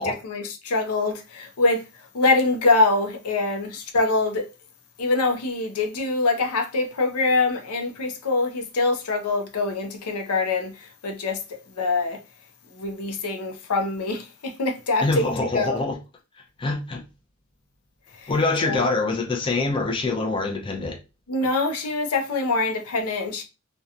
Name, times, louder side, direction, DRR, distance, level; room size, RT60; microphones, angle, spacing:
voice 1, 0.0-1.8 2.1-4.5 5.0-11.4 11.7-12.2 12.7-15.8 18.2-18.3 18.7-18.8 21.3-23.4, left 3 dB, 85° left, 0.5 m, -24 dB
voice 2, 15.0-16.0 16.6-17.0 18.3-21.0, left 3 dB, 25° left, 0.4 m, -24 dB
2.7 x 2.2 x 2.4 m
head